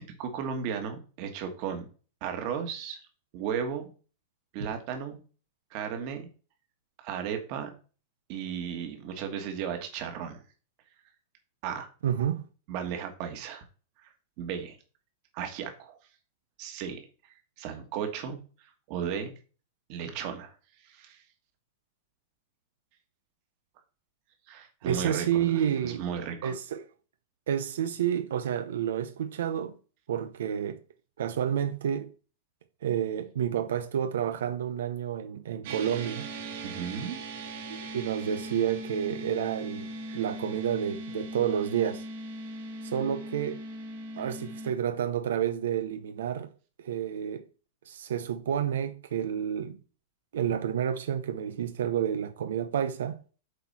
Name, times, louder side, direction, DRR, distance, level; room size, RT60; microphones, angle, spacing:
voice 1, 0.0-1.9 2.2-3.0 3.3-3.9 4.5-5.2 5.7-6.3 7.0-7.7 8.3-10.4 11.6-11.9 12.7-13.6 14.4-14.8 15.3-16.0 16.6-18.4 18.9-19.3 19.9-20.5 20.8-21.2 24.5-26.5 36.6-37.2 40.1-40.2, right 7 dB, 35° right, 1.5 m, -35 dB
voice 2, 12.0-12.4 24.8-26.0 26.4-26.8 27.5-29.7 30.1-30.8 31.2-32.1 32.8-36.2 37.7-39.9 40.1-42.0 42.8-43.6 44.2-46.5 46.8-47.5 47.9-49.8 50.3-53.2, right 9 dB, 85° right, 0.7 m, -30 dB
sound 1, 35.6-44.7, right 1 dB, 55° right, 2.0 m, -39 dB
8.0 x 4.5 x 4.2 m
supercardioid pair, 170°, 0 cm